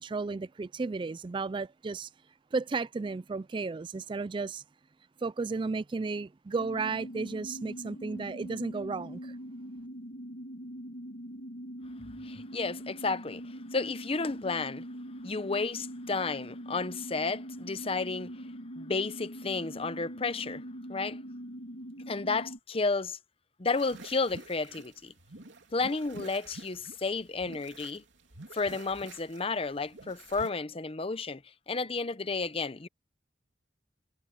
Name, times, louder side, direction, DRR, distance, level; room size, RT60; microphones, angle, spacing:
voice 1, 0.0-2.1 2.5-4.6 5.2-9.4, right 4 dB, 25° right, 0.3 m, -34 dB
sound 1, 6.6-22.6, equal, 65° left, 1.9 m, -43 dB
voice 2, 12.2-14.9 15.2-18.4 18.7-20.6 20.9-21.2 22.1-23.2 23.6-25.1 25.7-28.0 28.5-31.4 31.7-32.9, left 3 dB, 30° left, 0.7 m, -32 dB
sound 2, 23.7-30.5, right 2 dB, 80° right, 3.1 m, -49 dB
head